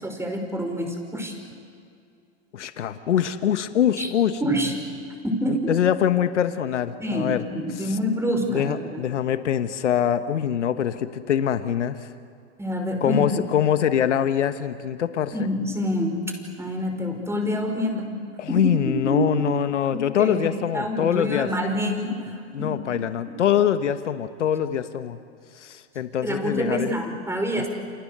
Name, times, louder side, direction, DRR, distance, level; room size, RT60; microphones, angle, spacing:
voice 1, 0.0-1.3 4.0-4.1 4.4-4.7 5.2-5.7 7.0-9.0 12.6-13.2 15.3-16.2 16.6-18.2 18.5-19.5 19.9-22.2 22.6-23.0 26.2-27.7, equal, 5° right, 3 dB, 5.7 m, -27 dB
voice 2, 2.5-4.4 5.5-7.5 7.8-7.9 8.5-12.1 13.0-15.5 18.4-21.5 22.5-25.2 25.6-26.9 27.6-27.7, left 9 dB, 85° left, 10 dB, 1.3 m, -24 dB
30.0 x 28.0 x 6.8 m, 2.4 s
hypercardioid pair, 95°, 35 cm